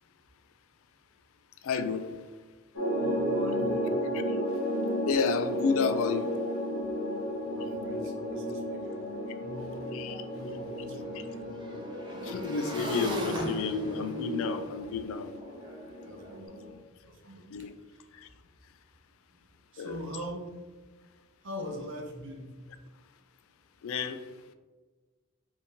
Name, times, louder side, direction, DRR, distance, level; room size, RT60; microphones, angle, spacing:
voice 1, 1.6-2.1 5.1-6.3 9.9-10.2 12.2-15.3 17.5-17.7 19.8-20.0 23.8-24.2, left 5 dB, 65° left, 9 dB, 0.3 m, -30 dB
sound 1, 2.7-16.7, equal, 80° left, 1.0 m, -34 dB
voice 2, 2.9-4.0 7.5-11.6 16.0-18.4 19.3-19.4 19.7-20.5 21.4-22.6, equal, 60° right, 1 dB, 0.7 m, -43 dB
Motorcycle / Engine, 8.9-9.0 9.2-16.4, equal, 20° right, 0.5 m, -38 dB
3.6 x 2.7 x 2.8 m, 1.3 s
head